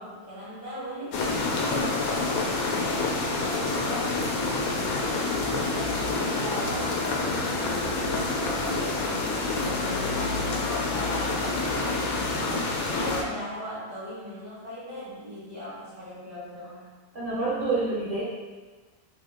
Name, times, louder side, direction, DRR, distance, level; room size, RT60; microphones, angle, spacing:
voice 1, 0.0-4.4 4.7-8.1 8.5-16.9, left 1 dB, 30° left, -9 dB, 0.6 m, -39 dB
sound 1, 1.1-13.2, left 3 dB, 85° left, 1.0 m, -27 dB
voice 2, 17.1-18.2, right 3 dB, 45° right, -8 dB, 0.8 m, -27 dB
2.8 x 2.5 x 3.6 m, 1.4 s
omnidirectional pair, 1.4 m